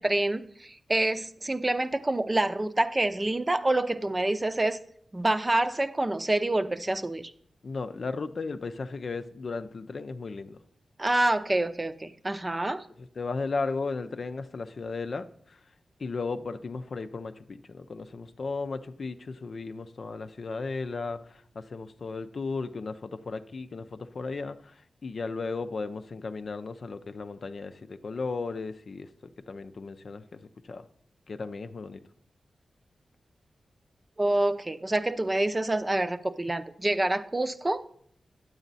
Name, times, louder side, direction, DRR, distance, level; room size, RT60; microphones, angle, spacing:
voice 1, 0.0-4.8 5.1-7.3 11.0-12.8 34.2-37.8, right 2 dB, 30° right, 10 dB, 0.6 m, -27 dB
voice 2, 7.6-10.6 13.0-15.3 16.0-21.2 21.7-24.6 25.0-29.1 29.5-30.4 30.7-30.8 31.3-32.0, left 4 dB, 65° left, 9 dB, 0.5 m, -35 dB
9.0 x 7.1 x 4.0 m, 0.62 s
cardioid pair, 45°, 0 cm